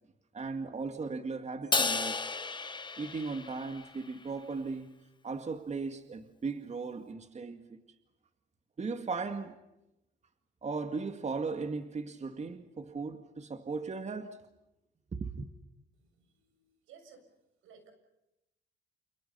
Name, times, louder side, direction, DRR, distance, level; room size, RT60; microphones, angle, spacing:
voice 1, 0.3-2.2 3.0-4.9 5.2-7.8 8.8-9.6 10.6-14.4 15.1-15.5, right 4 dB, 35° right, 2.1 m, -37 dB
Crash cymbal, 1.7-4.1, left 4 dB, 25° left, 1.7 m, -33 dB
voice 2, 16.2-17.2 17.6-17.9, right 6 dB, 90° right, 7.1 m, -57 dB
29.5 x 29.0 x 5.7 m
cardioid pair, 90°, 20 cm